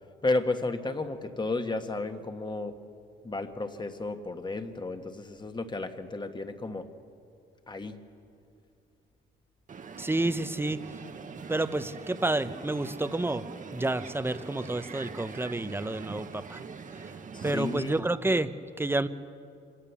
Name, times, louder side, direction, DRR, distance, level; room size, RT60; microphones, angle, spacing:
voice 1, 0.2-2.8 3.2-6.8 7.7-8.0 17.3-17.9, left 2 dB, 20° left, 7 dB, 1.5 m, -32 dB
Crowd, 9.7-18.0, right 5 dB, 40° right, 1.1 m, -43 dB
voice 2, 10.0-10.8 11.5-13.4 13.7-16.6 16.9-17.2 17.4-18.5 18.8-19.1, right 2 dB, 10° right, 12 dB, 0.8 m, -29 dB
25.5 x 17.5 x 7.1 m, 2.5 s
cardioid pair, 90°, 20 cm